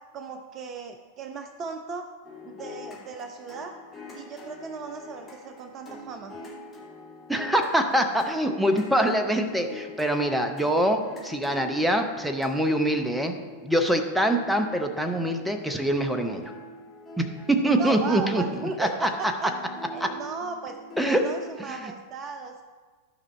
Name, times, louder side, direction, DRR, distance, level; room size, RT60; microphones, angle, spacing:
voice 1, 0.1-2.1 2.4-3.7 4.1-6.4 17.6-19.5 19.9-20.8 21.1-22.6, right 5 dB, 30° right, 6 dB, 0.6 m, -36 dB
sound 1, 2.2-21.6, left 2 dB, 15° left, 2.5 m, -44 dB
voice 2, 7.3-13.4 13.6-16.5 17.2-18.4 18.8-19.3 20.0-20.1 21.0-21.2 21.7-21.9, right 1 dB, 5° right, 5 dB, 0.8 m, -24 dB
13.0 x 5.5 x 4.2 m, 1.5 s
figure-of-eight pair, 90°, 0 cm